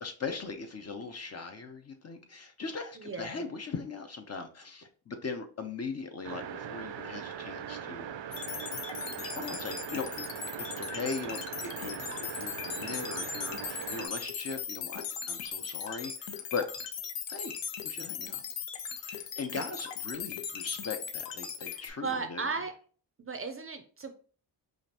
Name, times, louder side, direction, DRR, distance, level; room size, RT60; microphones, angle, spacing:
voice 1, 0.0-8.1 9.2-10.3 10.6-16.6 17.3-17.6 17.8-18.4 19.0-22.5, left 4 dB, 35° left, 6 dB, 0.6 m, -39 dB
voice 2, 3.0-3.4 21.6-22.7 23.2-24.1, right 4 dB, 30° right, 7 dB, 0.5 m, -36 dB
sound 1, 6.2-14.1, right 9 dB, 75° right, 0.6 m, -40 dB
sound 2, 8.3-21.9, left 7 dB, 75° left, 0.7 m, -38 dB
5.1 x 2.5 x 2.8 m, 0.40 s
cardioid pair, 95°, 45 cm